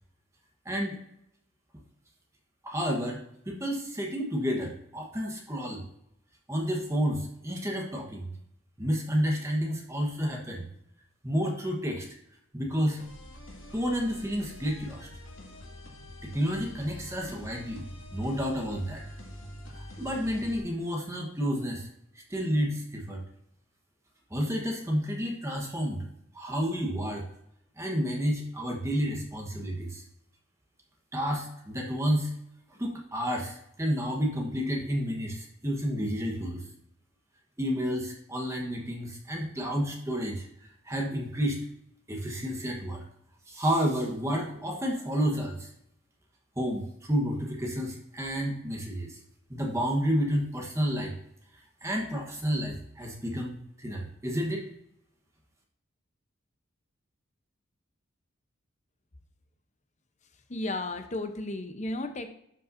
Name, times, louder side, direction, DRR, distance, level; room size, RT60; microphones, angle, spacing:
voice 1, 0.6-1.0 2.6-5.9 6.5-8.3 8.8-10.7 11.2-12.1 12.5-13.0 13.7-15.1 16.2-19.0 19.7-21.9 22.3-23.2 24.3-26.0 26.3-27.3 27.8-30.0 31.1-32.3 32.7-36.6 37.6-40.5 40.8-41.7 42.1-43.0 43.5-45.7 46.6-49.2 49.5-51.1 51.8-54.7, equal, 15° right, 0 dB, 1.2 m, -30 dB
sound 1, 13.0-20.6, left 1 dB, 80° left, 2.1 m, -45 dB
voice 2, 60.5-62.3, left 2 dB, 35° left, 7 dB, 0.8 m, -33 dB
12.0 x 5.4 x 2.6 m, 0.74 s
head